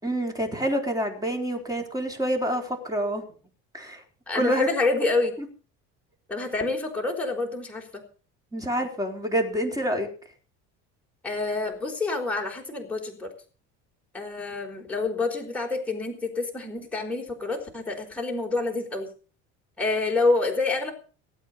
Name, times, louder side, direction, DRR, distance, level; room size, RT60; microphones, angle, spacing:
voice 1, 0.0-3.2 3.7-4.0 4.3-4.7 5.4-5.5 8.5-10.1, right 1 dB, 10° right, 4 dB, 4.2 m, -27 dB
voice 2, 4.3-5.3 6.3-8.0 11.2-13.3 14.1-19.1 19.8-20.9, left 3 dB, 5° left, 0 dB, 4.6 m, -27 dB
18.5 x 8.7 x 6.8 m, 0.40 s
cardioid pair, 125°, 31 cm